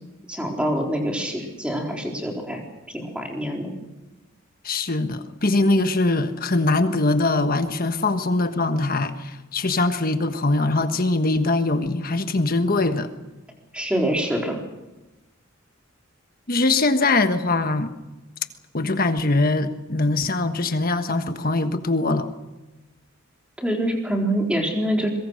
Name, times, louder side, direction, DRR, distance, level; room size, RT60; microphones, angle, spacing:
voice 1, 0.3-2.6 2.9-3.7 13.7-14.6 23.6-25.1, right 1 dB, 5° right, 0 dB, 4.1 m, -25 dB
voice 2, 4.6-13.1 16.5-17.9 18.7-22.3, left 2 dB, 45° left, 8 dB, 1.4 m, -22 dB
25.0 x 22.5 x 6.5 m, 1.1 s
head